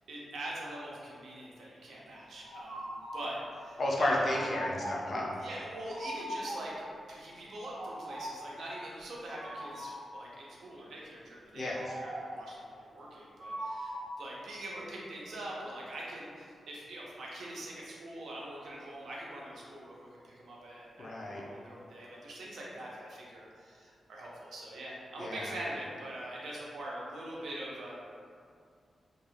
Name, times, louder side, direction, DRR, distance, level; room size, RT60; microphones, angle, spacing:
voice 1, 0.1-4.3 5.4-6.7 7.1-27.9, right 1 dB, 75° right, -4 dB, 0.6 m, -43 dB
sound 1, 2.4-3.3 4.2-5.1 5.9-6.8 7.7-8.5 9.4-10.1 11.7-12.5 13.4-14.2, equal, 35° right, 0.6 m, -41 dB
voice 2, 3.8-5.4 11.5-11.9 21.0-21.4 25.2-25.5, left 1 dB, 45° left, -3 dB, 0.4 m, -32 dB
2.4 x 2.3 x 3.2 m, 2.3 s
wide cardioid pair, 135°, 0 cm